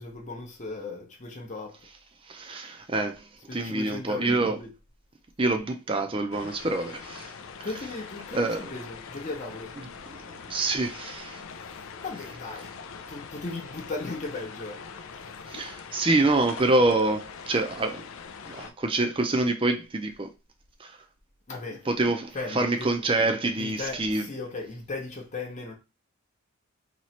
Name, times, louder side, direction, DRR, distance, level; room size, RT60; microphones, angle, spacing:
voice 1, 0.0-1.8 3.5-4.7 7.6-9.8 11.7-12.7 13.1-14.8 21.5-21.9 22.3-22.9 23.6-25.7, left 3 dB, 35° left, 0.8 m, -37 dB
voice 2, 2.3-4.6 5.4-7.3 8.3-8.7 10.5-11.4 15.5-18.0 18.5-20.3 20.8-21.0 21.9-24.3, right 2 dB, 25° right, 0.5 m, -26 dB
sound 1, 6.3-18.7, left 5 dB, 65° left, 0.4 m, -43 dB
3.0 x 3.0 x 4.2 m
head